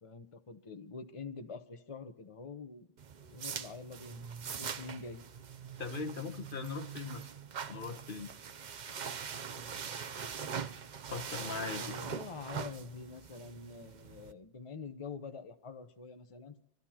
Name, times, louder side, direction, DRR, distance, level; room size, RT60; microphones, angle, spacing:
voice 1, 0.0-2.9 3.3-5.2 11.4-16.6, left 4 dB, 30° left, 7 dB, 0.9 m, -46 dB
sound 1, 3.0-14.3, right 6 dB, 50° right, 0.7 m, -43 dB
voice 2, 5.8-7.3 7.7-8.3 11.1-11.8, left 5 dB, 55° left, 6 dB, 1.1 m, -40 dB
26.0 x 13.0 x 2.9 m, 0.83 s
omnidirectional pair, 1.1 m